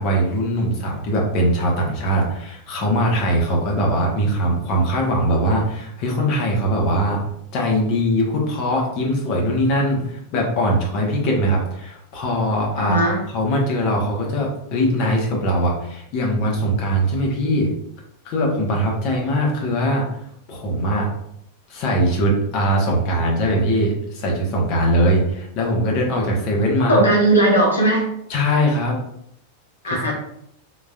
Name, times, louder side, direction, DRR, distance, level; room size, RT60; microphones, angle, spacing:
voice 1, 0.0-7.2 7.5-17.7 18.2-20.1 20.5-21.1 21.7-27.0 28.3-29.0 29.8-30.1, equal, 40° left, -1 dB, 1.0 m, -21 dB
voice 2, 12.8-13.2 26.9-28.1 29.8-30.1, right 1 dB, 75° left, -2 dB, 1.1 m, -17 dB
4.0 x 3.0 x 2.4 m, 0.75 s
figure-of-eight pair, 90°, 0 cm